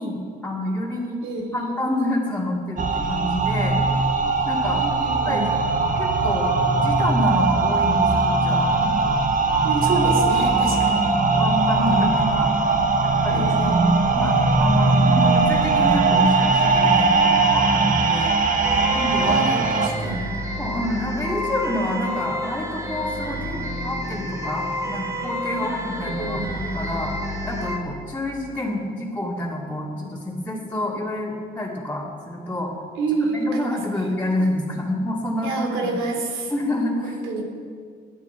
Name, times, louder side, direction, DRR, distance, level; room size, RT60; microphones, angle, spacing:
voice 1, 0.0-1.2 1.5-3.8 4.5-4.8 5.2-5.5 6.0-8.6 11.3-12.7 13.0-13.5 14.1-18.4 18.9-19.4 20.6-27.1 27.4-32.7 33.2-35.5 35.8-36.0 36.5-37.2, left 1 dB, 10° left, -7 dB, 2.6 m, -28 dB
voice 2, 1.2-1.7 4.7-5.4 9.6-11.0 13.3-13.8 19.2-20.2 25.6-25.7 26.2-26.4 33.0-34.1 35.4-36.5 37.0-37.4, right 3 dB, 80° right, 1 dB, 3.0 m, -28 dB
sound 1, 2.8-19.9, right 3 dB, 40° right, 1.3 m, -20 dB
sound 2, 18.6-27.8, equal, 15° right, 2.6 m, -29 dB
22.0 x 8.3 x 4.7 m, 2.1 s
cardioid pair, 90°, 20 cm